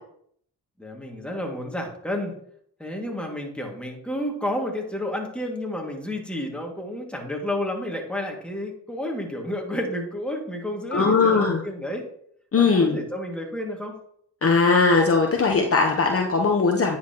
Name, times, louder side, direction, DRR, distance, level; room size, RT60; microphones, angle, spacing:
voice 1, 0.8-2.3 2.8-12.0 12.6-14.0, left 1 dB, 5° left, 0 dB, 2.2 m, -31 dB
voice 2, 10.9-11.6 12.5-13.0 14.4-17.0, left 4 dB, 35° left, 2 dB, 0.9 m, -19 dB
9.4 x 5.8 x 3.0 m, 0.66 s
supercardioid pair, 45°, 38 cm